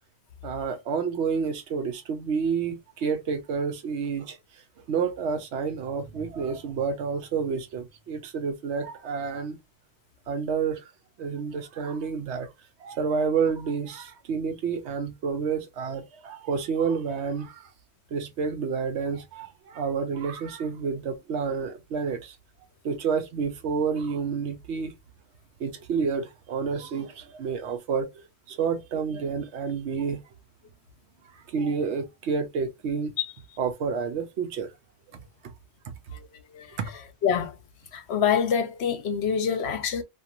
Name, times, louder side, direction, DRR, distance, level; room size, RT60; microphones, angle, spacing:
voice 1, 0.4-4.4 4.9-9.6 10.3-10.9 11.2-12.5 12.8-17.7 18.1-22.4 22.8-24.9 25.6-28.1 28.5-30.2 31.3-33.1 33.6-34.7 35.4-35.5 35.9-36.0 36.8-36.9, right 5 dB, 70° right, 0.9 m, -29 dB
voice 2, 36.1-36.8 37.2-37.6 37.9-40.0, left 7 dB, 65° left, 0.9 m, -26 dB
2.5 x 2.5 x 2.8 m
omnidirectional pair, 1.2 m